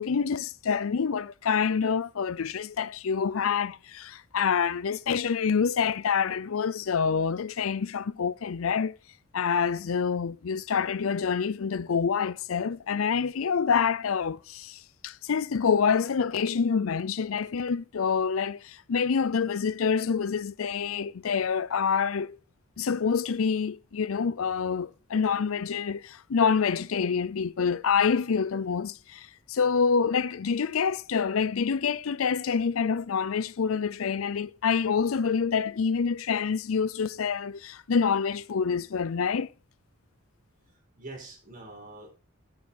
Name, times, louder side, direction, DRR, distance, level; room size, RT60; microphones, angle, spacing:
voice 1, 0.0-9.0 9.3-22.4 22.8-39.5, left 6 dB, 85° left, 0.5 m, -27 dB
voice 2, 3.2-3.6 41.0-42.2, right 2 dB, 40° right, 4.9 m, -45 dB
13.0 x 7.3 x 4.1 m
head